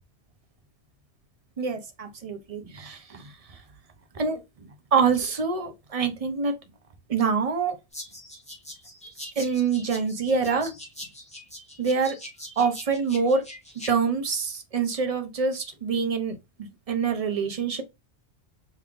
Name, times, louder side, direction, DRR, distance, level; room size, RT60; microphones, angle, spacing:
voice 1, 1.6-3.6 4.1-4.4 4.9-6.5 7.1-7.8 9.4-10.7 11.8-12.2 12.6-13.4 13.9-17.8, right 5 dB, 40° right, 0.6 m, -26 dB
sound 1, 7.9-13.9, left 1 dB, 5° left, 1.1 m, -42 dB
3.5 x 3.2 x 2.4 m
omnidirectional pair, 1.1 m